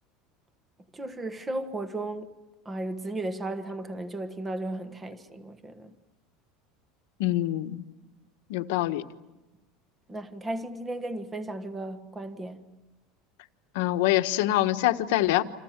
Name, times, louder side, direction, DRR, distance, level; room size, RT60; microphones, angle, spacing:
voice 1, 0.9-2.3 2.6-5.9 10.1-12.7, right 2 dB, 10° right, 1.3 m, -35 dB
voice 2, 7.2-7.8 8.5-9.0 13.7-15.4, left 15 dB, 70° left, 1.3 m, -25 dB
29.5 x 27.0 x 7.4 m
cardioid pair, 175°, 0 cm